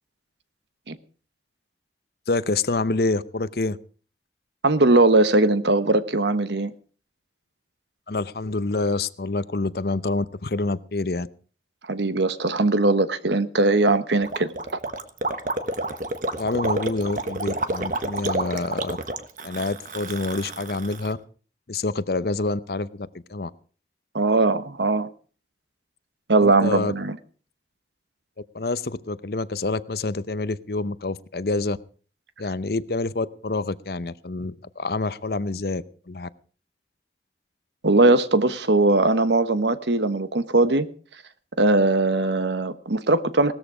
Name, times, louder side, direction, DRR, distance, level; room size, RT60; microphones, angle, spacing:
voice 1, 2.3-3.8 8.1-11.3 16.4-19.0 19.4-21.2 21.7-23.5 26.4-26.9 28.5-31.8 32.4-36.3, left 3 dB, 60° left, 0.7 m, -27 dB
voice 2, 4.6-6.7 11.8-14.5 24.1-25.1 26.3-27.2 37.8-40.9 41.6-43.5, right 2 dB, 80° right, 1.2 m, -20 dB
Gurgling, 14.2-21.1, right 2 dB, 45° right, 1.3 m, -29 dB
18.0 x 13.5 x 5.0 m
head